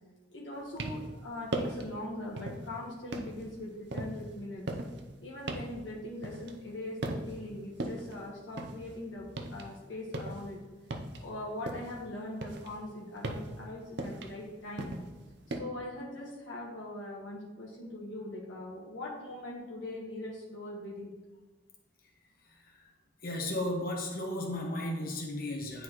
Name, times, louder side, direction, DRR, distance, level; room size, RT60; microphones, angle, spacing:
voice 1, 0.3-4.7 5.2-10.6 11.2-15.0 15.5-21.1, left 1 dB, 75° left, -4 dB, 1.3 m, -41 dB
sound 1, 0.6-1.2 1.5-1.9 2.4-2.7 3.1-6.8 7.0-7.5 7.8-9.7 10.0-12.0 12.4-15.6, right 1 dB, 65° right, 0.7 m, -38 dB
voice 2, 23.2-25.8, left 1 dB, 50° left, 0 dB, 1.1 m, -34 dB
9.7 x 4.1 x 3.1 m, 1.2 s
head